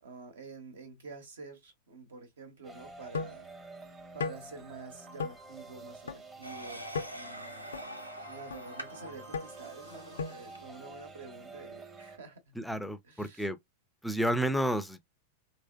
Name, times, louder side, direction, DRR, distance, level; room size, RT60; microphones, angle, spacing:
voice 1, 0.0-3.5 4.1-6.9 7.1-7.7 8.3-12.6 13.1-13.5, right 4 dB, 65° right, 1.0 m, -48 dB
sound 1, 2.6-12.2, right 3 dB, 20° right, 0.8 m, -49 dB
sound 2, 3.1-3.4 4.2-4.4 5.2-5.3 6.1-6.2 6.9-7.1 7.7-7.8 8.5-8.6 9.3-9.5 10.2-10.4, left 5 dB, 65° left, 0.4 m, -34 dB
sound 3, 6.4-10.8, equal, 90° right, 0.5 m, -46 dB
voice 2, 12.5-13.6 14.0-15.0, equal, ahead, 0.4 m, -31 dB
3.2 x 3.1 x 2.2 m
figure-of-eight pair, 90°, 0 cm